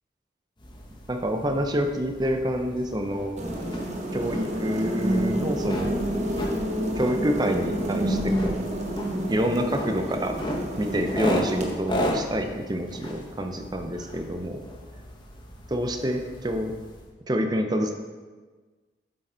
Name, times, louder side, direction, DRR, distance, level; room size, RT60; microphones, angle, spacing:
sound 1, 0.6-17.1, equal, 25° left, 1.0 m, -36 dB
voice 1, 1.1-3.4 4.1-5.9 7.0-8.6 9.3-10.3 10.8-14.6 15.7-16.7 17.3-17.9, equal, 25° right, 5 dB, 0.6 m, -27 dB
sound 2, 3.4-11.7, right 1 dB, 40° right, 1.2 m, -29 dB
8.5 x 7.7 x 3.9 m, 1.4 s
head